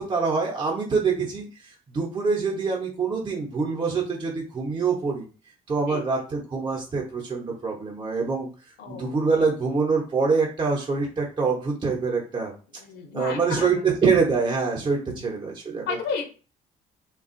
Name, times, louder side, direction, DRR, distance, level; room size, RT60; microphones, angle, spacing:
voice 1, 0.0-5.3 5.7-8.5 8.9-12.5 13.1-16.0, right 4 dB, 30° right, -2 dB, 0.8 m, -25 dB
voice 2, 8.8-9.1 12.8-13.6 15.3-15.4 15.9-16.3, left 5 dB, 80° left, 3 dB, 0.9 m, -32 dB
3.4 x 2.3 x 2.5 m, 0.36 s
cardioid pair, 110°, 17 cm